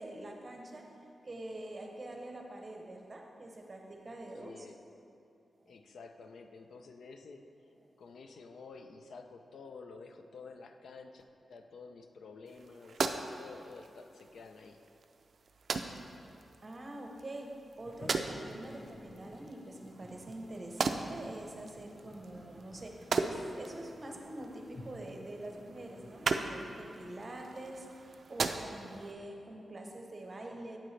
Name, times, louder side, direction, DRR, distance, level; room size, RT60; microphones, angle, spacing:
voice 1, 0.0-4.7 5.6-5.8 16.6-30.8, right 1 dB, 30° right, 2 dB, 0.7 m, -45 dB
voice 2, 4.4-4.8 5.7-7.4 8.0-14.8, left 4 dB, 80° left, 6 dB, 0.5 m, -51 dB
sound 1, 12.5-29.1, right 4 dB, 55° right, 0.3 m, -39 dB
Toilet flush, 17.8-26.9, left 1 dB, 25° left, 0.5 m, -54 dB
8.7 x 7.6 x 3.2 m, 2.6 s
wide cardioid pair, 150°, 0 cm